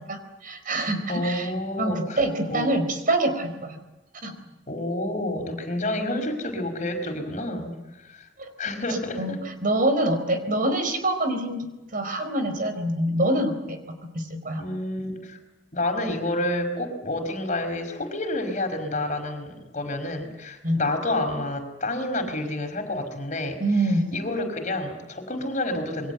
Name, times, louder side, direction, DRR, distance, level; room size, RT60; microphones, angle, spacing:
voice 1, 0.0-1.5 1.8-3.8 4.2-4.3 8.4-8.5 9.2-9.3 9.6-14.6 20.6-20.8 23.6-24.1, right 1 dB, 50° right, 8 dB, 4.5 m, -25 dB
voice 2, 1.1-2.2 2.5-2.7 4.7-7.7 8.1-8.3 8.6-9.4 10.6-10.7 14.6-15.4 15.7-23.6 24.1-26.1, left 1 dB, 40° left, 5 dB, 5.1 m, -29 dB
28.0 x 23.0 x 8.1 m, 1.0 s
head